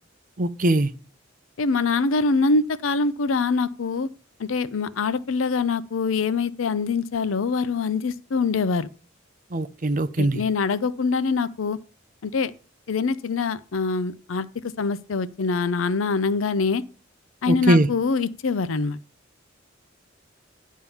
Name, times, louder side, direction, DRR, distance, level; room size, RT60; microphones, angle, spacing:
voice 1, 0.4-0.9 9.5-10.4 17.5-17.9, right 1 dB, 45° right, 0.7 m, -21 dB
voice 2, 1.6-4.1 4.4-8.9 10.2-11.8 12.2-12.5 12.9-14.5 14.8-16.8 17.4-19.0, left 4 dB, 90° left, 0.5 m, -24 dB
10.5 x 3.7 x 7.0 m
head